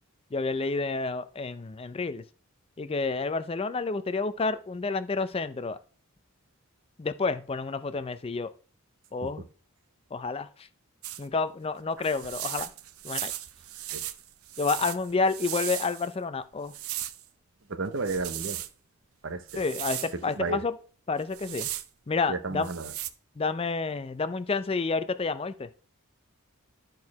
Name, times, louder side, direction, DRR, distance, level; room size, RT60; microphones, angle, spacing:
voice 1, 0.3-2.2 2.8-5.8 7.0-8.5 9.1-9.4 10.1-10.5 11.2-12.7 13.0-13.3 14.6-16.7 19.5-20.8 21.1-21.7 22.1-22.7 23.4-25.7, left 4 dB, 25° left, 0.4 m, -29 dB
sound 1, 11.0-11.2 12.0-16.1 16.7-17.2 18.0-18.7 19.5-20.1 21.2-21.9 22.6-23.1, right 13 dB, 85° right, 0.6 m, -36 dB
voice 2, 17.7-18.6 19.2-19.6 20.4-20.6 22.3-22.9, right 3 dB, 60° right, 0.8 m, -32 dB
10.5 x 4.5 x 4.7 m
head